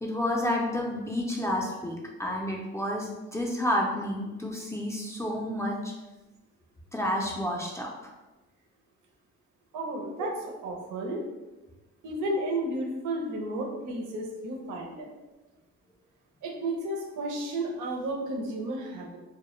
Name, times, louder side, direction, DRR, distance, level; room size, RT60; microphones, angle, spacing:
voice 1, 0.0-5.9 6.9-8.1, left 1 dB, 10° left, -2 dB, 0.3 m, -30 dB
voice 2, 9.7-11.3 12.0-15.1 16.4-19.2, right 1 dB, 85° right, 0 dB, 0.6 m, -32 dB
2.1 x 2.1 x 2.9 m, 1.1 s
cardioid pair, 90°, 30 cm